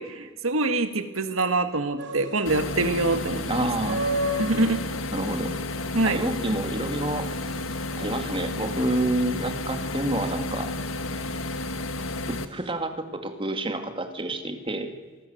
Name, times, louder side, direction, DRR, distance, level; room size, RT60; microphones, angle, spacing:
voice 1, 0.0-3.7 4.4-4.8 5.9-6.2, right 2 dB, 90° right, 8 dB, 1.8 m, -25 dB
sound 1, 2.0-12.7, equal, 60° right, 3.0 m, -36 dB
sound 2, 2.5-12.5, left 2 dB, 85° left, 1.7 m, -32 dB
voice 2, 3.5-4.0 5.1-5.5 6.0-7.3 8.0-10.7 12.3-14.9, right 1 dB, 25° right, 6 dB, 2.4 m, -28 dB
27.0 x 19.0 x 7.9 m, 1.3 s
head